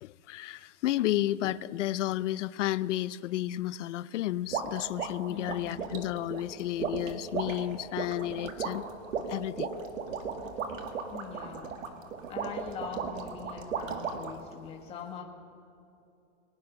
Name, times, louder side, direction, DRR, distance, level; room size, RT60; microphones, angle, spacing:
voice 1, 0.0-8.8 9.3-9.7, left 14 dB, 70° left, 18 dB, 0.6 m, -32 dB
sound 1, 4.5-14.4, right 6 dB, 90° right, 1.9 m, -36 dB
voice 2, 5.3-5.9 11.1-11.8 12.3-15.2, left 7 dB, 15° left, -1 dB, 1.4 m, -42 dB
21.5 x 9.7 x 5.9 m, 2.7 s
supercardioid pair, 160°, 38 cm